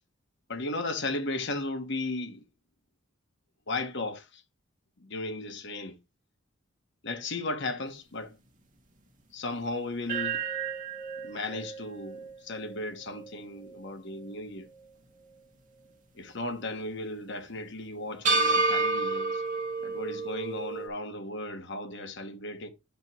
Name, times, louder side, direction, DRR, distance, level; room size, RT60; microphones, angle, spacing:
voice 1, 0.5-2.4 3.7-4.4 5.0-5.9 7.0-8.4 9.3-10.4 11.2-14.7 16.1-19.4 19.8-22.7, left 2 dB, 60° left, 1.4 m, -35 dB
sound 1, 10.1-14.4 14.7-14.8 18.2-20.9, right 3 dB, 40° right, 2.3 m, -31 dB
10.5 x 5.4 x 3.0 m
head